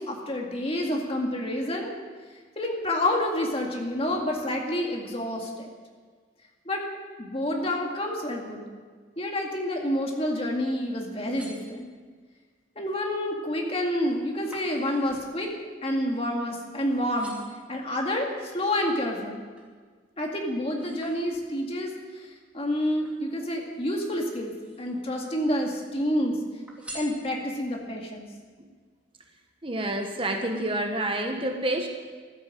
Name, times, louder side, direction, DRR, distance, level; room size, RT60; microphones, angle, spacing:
voice 1, 0.0-1.9 2.6-5.7 6.7-6.8 7.2-8.7 9.2-11.9 12.8-15.5 15.8-17.4 17.7-19.4 20.2-22.3 22.5-24.5 24.8-26.4 26.9-28.3, left 1 dB, 30° left, 1 dB, 2.1 m, -28 dB
sound 1, 11.0-12.3 12.8-13.2 13.6-16.7 17.0-17.7 18.3-19.8 20.2-21.8 22.6-23.8 24.3-25.1 25.5-26.2 26.7-27.7 28.2-28.3, right 1 dB, 5° right, 2.6 m, -49 dB
voice 2, 29.6-31.9, right 1 dB, 25° right, 3 dB, 1.2 m, -28 dB
14.0 x 12.0 x 7.6 m, 1.5 s
head